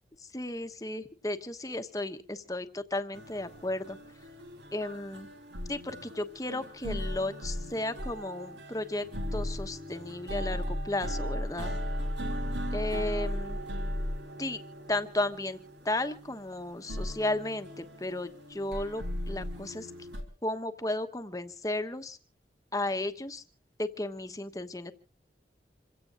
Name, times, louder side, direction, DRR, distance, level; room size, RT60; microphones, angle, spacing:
voice 1, 0.2-4.0 4.7-5.3 5.7-11.8 12.7-13.6 14.4-14.6 14.9-15.6 15.8-19.9 20.4-22.2 22.7-23.4 23.8-24.9, left 1 dB, 20° left, 9 dB, 1.1 m, -34 dB
sound 1, 3.1-20.2, equal, 90° right, 3.8 m, -37 dB
27.0 x 16.5 x 2.6 m, 0.38 s
head